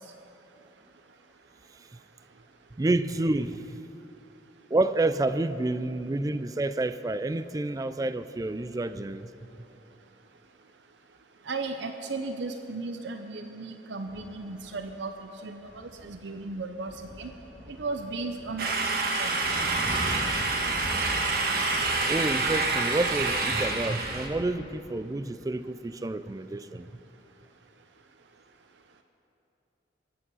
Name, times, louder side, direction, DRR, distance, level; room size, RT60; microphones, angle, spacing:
voice 1, 2.8-3.8 4.7-9.3 22.1-26.9, right 2 dB, 20° right, 13 dB, 0.3 m, -29 dB
voice 2, 11.5-15.1 15.4-16.9 17.2-17.3 17.8-19.4, right 3 dB, 75° right, 7 dB, 0.7 m, -35 dB
sound 1, 14.1-14.8 15.5-16.6 16.8-24.4, equal, 35° right, 2.4 m, -41 dB
sound 2, 18.6-24.3, right 3 dB, 55° right, 1.4 m, -27 dB
23.0 x 8.6 x 5.5 m, 2.9 s
head